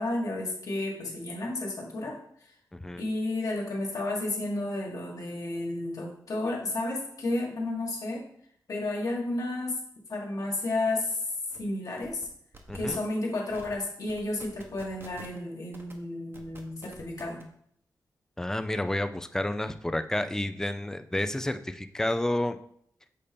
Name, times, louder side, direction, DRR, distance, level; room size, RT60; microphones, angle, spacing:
voice 1, 0.0-2.1 3.0-8.2 8.7-9.7 10.1-11.2 11.6-12.3 12.7-17.4, left 2 dB, 55° left, -1 dB, 1.6 m, -32 dB
voice 2, 2.7-3.0 12.7-13.0 18.4-22.6, left 1 dB, 5° left, 9 dB, 0.4 m, -30 dB
sound 1, 10.9-11.0 11.3-11.6 12.0-12.3 12.5-13.0 13.5-13.7 14.1-15.4 15.7-15.9 16.3-17.4, right 2 dB, 35° right, 0.9 m, -47 dB
6.7 x 2.7 x 5.1 m, 0.67 s
wide cardioid pair, 100°, 7 cm